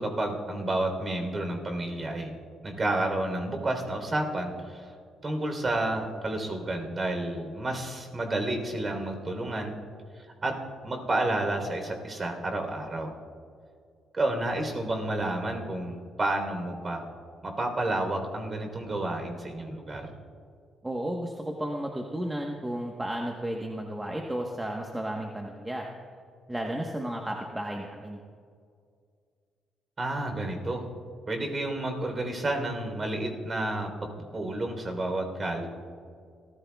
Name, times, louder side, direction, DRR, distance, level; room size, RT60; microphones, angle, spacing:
voice 1, 0.0-2.3 2.6-4.9 5.2-9.7 10.1-10.5 10.8-13.1 14.1-17.0 17.4-20.1 30.0-30.8 31.3-35.7, right 2 dB, 30° right, 4 dB, 3.6 m, -30 dB
voice 2, 20.8-25.9 26.5-28.2, right 1 dB, 10° right, 1 dB, 1.2 m, -33 dB
29.5 x 14.5 x 2.4 m, 2.2 s
cardioid pair, 90°, 0 cm